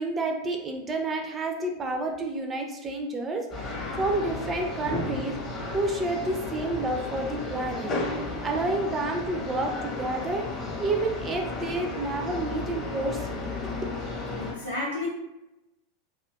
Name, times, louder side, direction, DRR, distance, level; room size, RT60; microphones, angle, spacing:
voice 1, 0.0-5.4 5.7-7.9 8.4-10.4 10.8-13.7, right 2 dB, 20° right, 3 dB, 0.3 m, -29 dB
sound 1, 3.5-14.5, left 3 dB, 25° left, 0.7 m, -34 dB
voice 2, 14.4-15.1, left 2 dB, 80° left, -7 dB, 0.6 m, -32 dB
2.4 x 2.3 x 2.3 m, 0.93 s
figure-of-eight pair, 85°, 0 cm